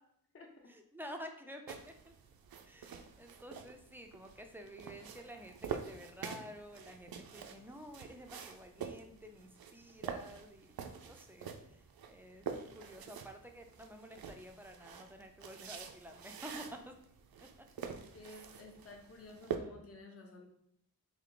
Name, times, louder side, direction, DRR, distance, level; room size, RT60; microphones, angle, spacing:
voice 1, 0.7-2.1 2.7-16.9, equal, 5° right, 4 dB, 0.3 m, -51 dB
sound 1, 1.7-19.6, right 7 dB, 85° right, 0.5 m, -46 dB
voice 2, 18.1-20.5, left 2 dB, 40° left, 2 dB, 0.7 m, -53 dB
3.4 x 2.8 x 3.7 m, 0.72 s
wide cardioid pair, 140°, 35 cm